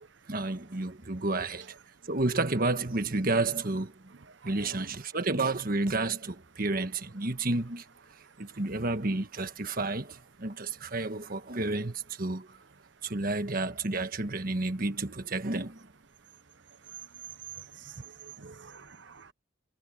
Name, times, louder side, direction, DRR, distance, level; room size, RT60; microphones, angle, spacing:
voice 1, 0.3-1.6 2.1-3.9 4.4-7.8 8.6-10.0 10.4-11.9 12.2-12.4 13.1-15.7, right 2 dB, 50° right, 1.5 m, -30 dB
voice 2, 4.5-4.9 17.6-19.3, right 6 dB, 65° right, 0.9 m, -47 dB
head